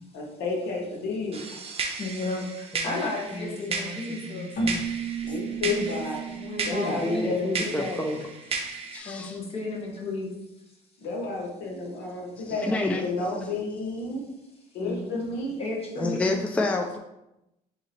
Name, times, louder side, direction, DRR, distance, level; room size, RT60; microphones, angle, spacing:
voice 1, 0.1-1.4 5.2-6.2 6.6-8.0 11.0-14.2 14.7-15.6, left 3 dB, 90° left, 0 dB, 1.1 m, -31 dB
sound 1, 1.3-9.0, right 4 dB, 35° right, 0.6 m, -35 dB
voice 2, 2.0-4.5 6.3-7.6 9.0-10.3 14.8-15.3 15.6-16.4, left 2 dB, 35° left, -2 dB, 1.3 m, -33 dB
voice 3, 3.3-4.8 6.7-8.2 8.5-8.6 8.9-9.4 12.4-13.0 16.0-17.0, left 2 dB, 10° left, 3 dB, 0.3 m, -30 dB
Keyboard (musical), 4.5-8.2, right 4 dB, 60° left, 1.1 m, -34 dB
3.9 x 2.8 x 4.3 m, 0.89 s
cardioid pair, 110°, 17 cm